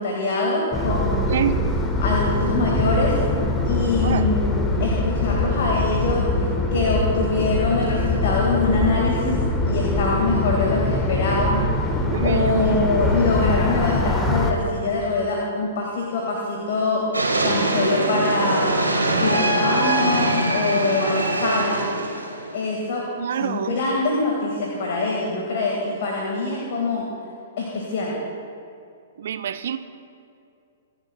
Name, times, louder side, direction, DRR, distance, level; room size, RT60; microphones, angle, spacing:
voice 1, 0.0-1.5 2.0-3.1 3.6-6.2 6.7-9.4 9.6-17.0 17.4-21.9 22.5-23.0 23.3-27.0 27.6-28.2, left 3 dB, 50° left, -2 dB, 2.0 m, -24 dB
sound 1, 0.7-14.5, left 2 dB, 10° left, 1.1 m, -23 dB
voice 2, 1.3-1.6 4.0-4.3 12.1-12.6 23.2-23.7 29.2-29.8, right 9 dB, 55° right, 11 dB, 0.6 m, -26 dB
sound 2, 17.1-22.6, right 1 dB, 80° right, 1.7 m, -23 dB
25.5 x 11.0 x 2.3 m, 2.5 s
figure-of-eight pair, 110°, 0 cm